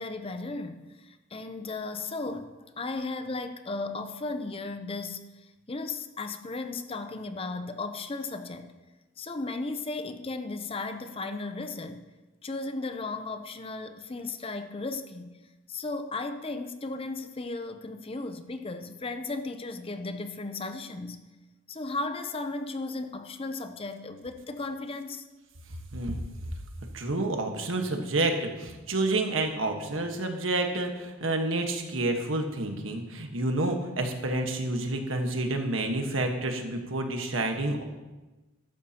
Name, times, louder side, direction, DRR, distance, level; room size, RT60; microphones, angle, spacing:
voice 1, 0.0-8.7 9.2-12.0 12.4-15.4 15.7-21.2 21.7-25.2, left 3 dB, 30° left, 0.6 m, -35 dB
voice 2, 26.9-37.9, right 2 dB, 80° right, 1.4 m, -29 dB
14.0 x 11.5 x 2.9 m
head